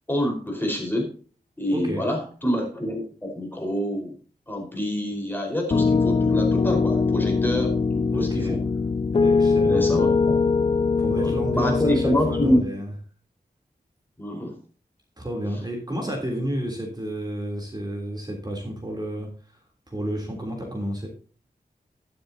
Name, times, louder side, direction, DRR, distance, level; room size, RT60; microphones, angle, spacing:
voice 1, 0.1-1.1 1.6-4.1 4.5-8.6 9.6-10.4 11.1-12.6 14.2-14.6, equal, 10° left, 1 dB, 4.9 m, -26 dB
voice 2, 1.7-2.0 8.1-8.6 9.1-10.2 11.0-12.9 15.2-19.6 19.9-21.1, right 1 dB, 25° right, 0 dB, 3.5 m, -31 dB
Piano, 5.7-12.6, left 4 dB, 35° left, 0.4 m, -22 dB
12.0 x 12.0 x 2.9 m, 0.39 s
wide cardioid pair, 95°, 16 cm